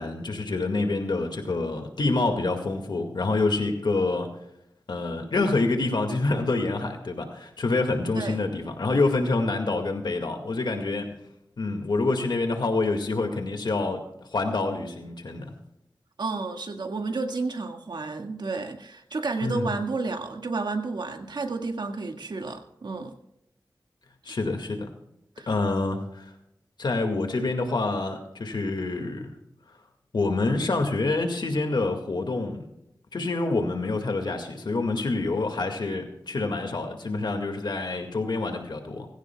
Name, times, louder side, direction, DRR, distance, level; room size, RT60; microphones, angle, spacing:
voice 1, 0.0-4.3 4.9-11.1 11.6-14.0 14.3-15.5 19.4-19.7 24.2-24.9 25.5-26.3 26.8-29.4 30.1-32.6 33.1-39.1, left 3 dB, 75° left, 4 dB, 2.0 m, -27 dB
voice 2, 8.1-8.5 16.2-23.1 25.4-25.5 25.8-25.9, right 3 dB, 75° right, 4 dB, 1.8 m, -31 dB
20.0 x 16.5 x 2.3 m, 0.81 s
wide cardioid pair, 80°, 8 cm